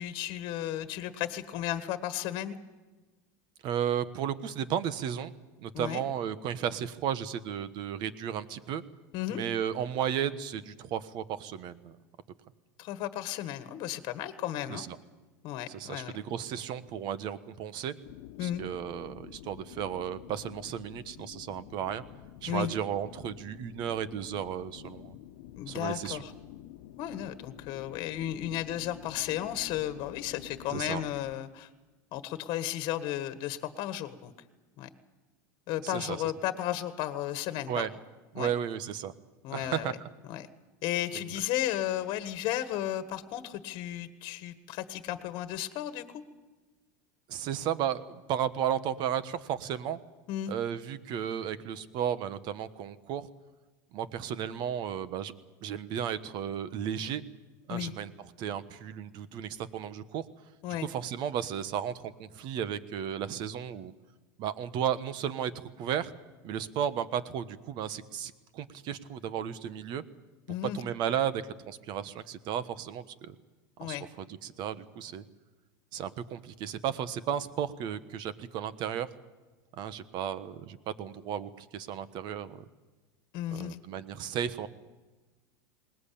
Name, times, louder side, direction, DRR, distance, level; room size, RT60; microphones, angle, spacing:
voice 1, 0.0-2.6 5.7-6.0 9.1-9.4 12.8-14.8 15.4-16.1 18.4-18.6 22.5-22.7 25.6-26.3 27.0-31.7 32.1-34.3 34.8-34.9 35.7-37.9 38.3-38.5 39.4-39.9 40.3-40.5 40.8-46.2 50.3-50.5 57.7-57.9 60.6-60.9 70.5-70.8 73.8-74.0 83.3-83.8, left 12 dB, 50° left, 10 dB, 1.5 m, -34 dB
voice 2, 3.6-5.3 5.6-8.8 9.3-11.9 14.7-15.0 15.7-17.9 18.4-22.0 22.4-25.2 25.7-26.2 30.7-31.0 35.8-36.2 37.7-37.9 38.3-39.1 39.5-39.9 47.3-50.0 50.5-53.3 53.9-55.3 55.6-57.2 57.7-58.1 58.4-60.3 60.7-61.9 62.2-63.9 64.4-66.1 66.4-70.0 70.7-73.3 73.8-75.2 75.9-79.1 79.7-82.6 83.5-84.7, right 9 dB, 50° right, 14 dB, 1.3 m, -34 dB
sound 1, 18.0-31.3, left 13 dB, 70° left, 1.1 m, -49 dB
20.5 x 19.0 x 8.7 m, 1.3 s
supercardioid pair, 125°, 10 cm